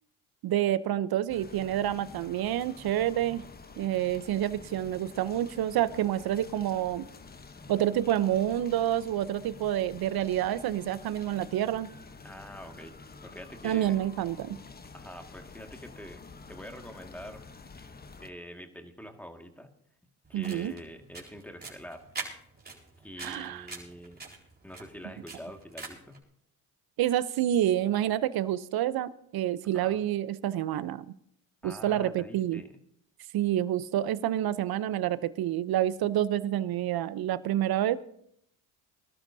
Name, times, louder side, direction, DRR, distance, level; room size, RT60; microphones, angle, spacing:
voice 1, 0.4-3.4 3.8-7.0 7.7-11.9 13.6-14.6 20.3-20.7 23.2-23.7 27.0-31.0 31.6-32.6 33.3-38.0, right 12 dB, 60° right, 15 dB, 0.8 m, -28 dB
sound 1, 1.3-18.3, left 4 dB, 20° left, 1.1 m, -49 dB
voice 2, 12.2-13.0 13.2-14.0 14.9-16.2 16.5-17.4 18.2-19.7 20.3-22.1 23.0-24.2 24.6-26.2 29.7-30.0 31.6-32.7, equal, 5° left, 4 dB, 2.0 m, -45 dB
sound 2, 20.2-26.2, right 3 dB, 25° right, 4.4 m, -44 dB
23.0 x 12.5 x 2.8 m, 0.68 s
supercardioid pair, 70°, 41 cm